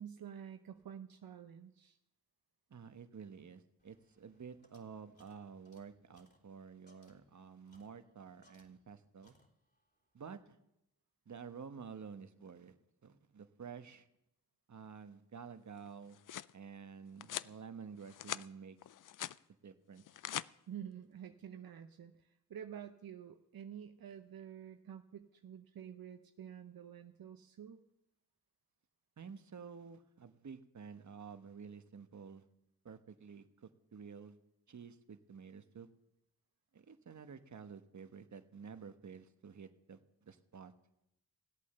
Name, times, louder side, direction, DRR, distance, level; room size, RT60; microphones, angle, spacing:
voice 1, 0.0-2.0 20.7-27.8, right 9 dB, 75° right, 6 dB, 0.8 m, -49 dB
voice 2, 2.7-9.3 10.1-10.6 11.3-12.7 13.0-14.1 14.7-16.2 16.5-18.8 19.6-20.0 29.2-32.4 32.8-34.4 34.7-35.9 36.7-40.7, right 6 dB, 55° right, 9 dB, 1.2 m, -51 dB
sound 1, 3.8-9.0 9.2-9.9, left 1 dB, 30° left, 3.6 m, -71 dB
sound 2, 15.9-16.5 17.2-17.5 18.0-18.5 18.8-19.4 20.0-20.5, left 11 dB, 60° left, 0.5 m, -42 dB
17.0 x 8.4 x 6.8 m, 0.85 s
cardioid pair, 50°, 35 cm